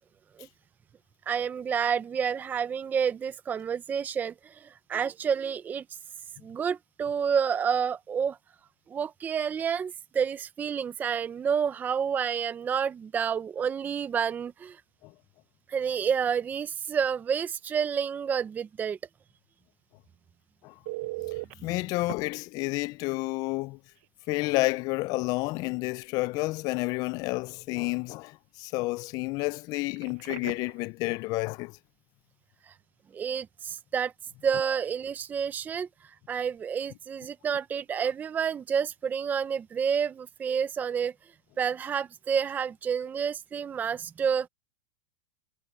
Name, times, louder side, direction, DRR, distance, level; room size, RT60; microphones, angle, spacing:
voice 1, 1.3-5.8 6.4-8.4 8.9-14.8 15.7-19.0 32.7-32.8 33.1-34.1 34.4-41.1 41.6-44.5, right 7 dB, 15° right, 0.6 m, -29 dB
Telephone, 20.9-21.5 22.1-22.2 24.0-24.1 24.5-24.7 30.0-30.8 37.9-38.1, right 21 dB, 55° right, 0.7 m, -38 dB
voice 2, 21.6-23.8 24.3-31.7, left 22 dB, 35° left, 0.4 m, -30 dB
supercardioid pair, 145°, 11 cm